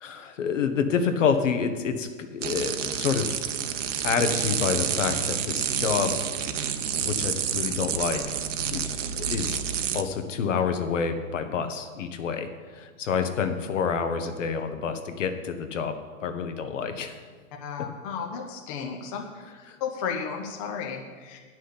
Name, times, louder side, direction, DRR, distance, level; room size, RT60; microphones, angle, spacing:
voice 1, 0.0-3.4 4.0-6.2 7.0-8.4 8.7-9.6 9.9-12.5 12.7-17.2, left 6 dB, 60° left, 8 dB, 1.3 m, -28 dB
sound 1, 2.4-10.0, right 8 dB, 55° right, 1.0 m, -29 dB
voice 2, 17.6-19.2 19.8-21.4, left 6 dB, 25° left, 2 dB, 0.8 m, -33 dB
9.9 x 6.2 x 8.7 m, 1.5 s
hypercardioid pair, 150°, 42 cm